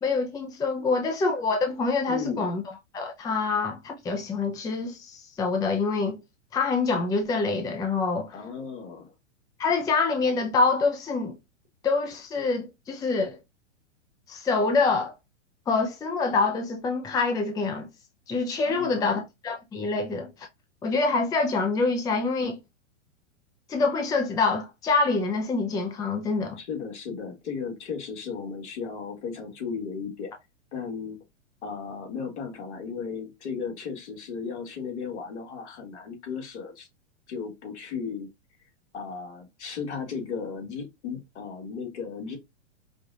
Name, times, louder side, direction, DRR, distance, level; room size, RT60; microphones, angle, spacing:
voice 1, 0.0-2.6 2.9-6.2 6.5-8.4 9.6-11.4 11.8-13.4 14.3-15.1 15.7-17.9 18.3-20.5 20.8-22.6 23.7-26.6, left 4 dB, 10° left, 0.5 m, -26 dB
voice 2, 2.1-2.5 8.3-9.1 18.6-19.2 26.6-30.3 30.7-31.2 31.6-36.9 37.3-38.3 38.9-42.4, left 5 dB, 65° left, 2.0 m, -35 dB
5.1 x 2.4 x 2.7 m
hypercardioid pair, 120°, 37 cm